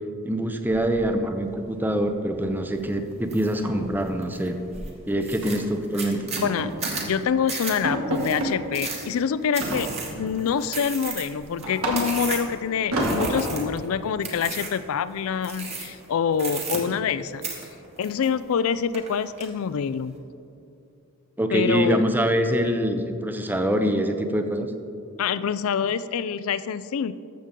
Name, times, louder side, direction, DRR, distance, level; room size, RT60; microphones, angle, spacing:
voice 1, 0.2-4.6 5.1-6.2 21.4-24.7, equal, 10° right, 7 dB, 0.5 m, -24 dB
sound 1, 0.7-1.5 1.8-2.0 2.3-2.6 2.8-2.9 3.3-4.9 5.4-5.7 6.1-7.1 7.4-7.5 7.8-8.6 9.6-10.3 10.8-12.4 12.9-13.7, right 1 dB, 70° right, 1.9 m, -30 dB
sound 2, 3.3-3.6 4.0-4.5 4.9-5.0 5.2-12.6 13.0-13.8 14.2-14.8 15.4-16.0 16.3-17.2 17.4-18.6 18.9-19.5, right 4 dB, 30° right, 1.4 m, -34 dB
voice 2, 6.4-6.7 7.0-9.9 10.1-17.4 18.0-20.2 21.5-22.0 25.2-27.1, left 7 dB, 65° left, 15 dB, 0.3 m, -26 dB
14.0 x 6.7 x 3.7 m, 2.5 s
head